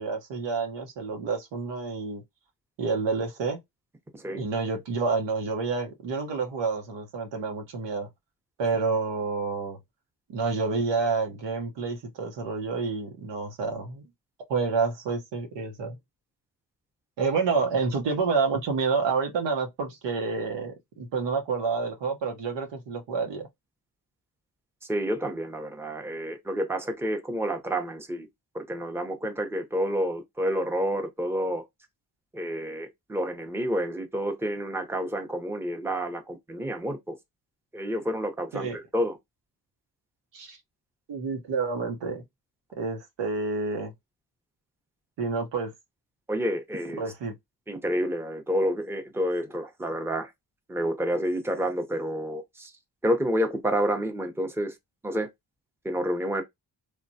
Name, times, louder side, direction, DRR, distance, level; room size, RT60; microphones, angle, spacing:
voice 1, 0.0-2.2 2.8-3.6 4.3-8.1 8.6-9.8 10.3-14.0 14.5-16.0 17.2-23.5 38.5-38.8 40.3-40.6 41.1-42.2 42.8-43.9 45.2-45.7 47.0-47.3, right 4 dB, 85° right, 0.9 m, -29 dB
voice 2, 24.8-28.3 28.5-31.6 32.3-37.2 37.7-39.2 46.3-47.0 47.7-50.3 50.7-52.7 53.0-54.8 55.0-55.3 55.8-56.4, equal, 5° right, 0.7 m, -29 dB
3.2 x 2.2 x 2.6 m
cardioid pair, 70°, 42 cm